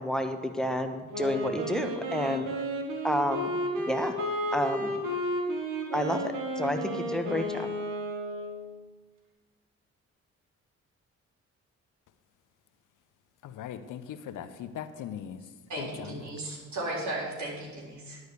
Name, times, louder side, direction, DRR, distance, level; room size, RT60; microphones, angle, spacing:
voice 1, 0.0-2.5 3.0-3.6 3.9-4.2 4.5-4.9 5.9-7.7, equal, ahead, 6 dB, 1.2 m, -30 dB
Wind instrument woodwind instrument, 1.1-8.7, equal, 75° right, 1.6 m, -32 dB
voice 2, 13.4-15.4 15.8-16.3, left 9 dB, 70° left, 11 dB, 0.8 m, -39 dB
voice 3, 15.7-18.2, right 1 dB, 60° right, -3 dB, 3.9 m, -35 dB
10.5 x 4.9 x 8.3 m, 1.3 s
supercardioid pair, 55°, 32 cm